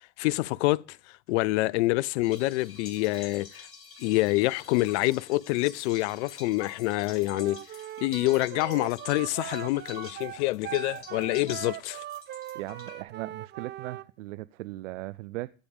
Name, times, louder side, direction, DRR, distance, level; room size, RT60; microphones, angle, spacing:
voice 1, 0.2-1.0 1.3-3.7 4.0-7.6 8.0-12.0, left 20 dB, 70° left, 0.5 m, -26 dB
sound 1, 2.2-13.0, left 5 dB, 35° left, 3.5 m, -48 dB
Wind instrument woodwind instrument, 7.3-14.1, right 12 dB, 30° right, 0.6 m, -40 dB
voice 2, 12.5-15.5, right 18 dB, 85° right, 0.5 m, -38 dB
14.5 x 5.0 x 7.1 m
hypercardioid pair, 100°, 35 cm